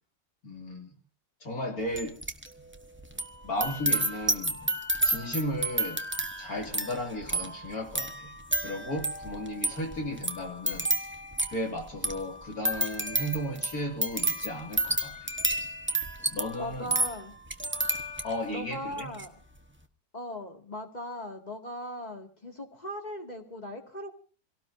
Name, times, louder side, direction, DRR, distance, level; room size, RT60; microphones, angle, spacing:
voice 1, 0.4-0.9 1.4-2.2 3.4-4.6 5.0-6.0 6.4-8.3 8.6-10.9 11.5-15.3 16.3-17.0 18.2-19.1, left 1 dB, 55° left, 2.9 m, -34 dB
sound 1, 1.9-2.5 2.7-18.5 18.9-19.3, right 2 dB, 10° right, 0.9 m, -31 dB
voice 2, 16.6-17.3 18.5-19.3 20.1-24.1, equal, 25° left, 2.3 m, -38 dB
27.5 x 18.0 x 2.7 m
omnidirectional pair, 1.9 m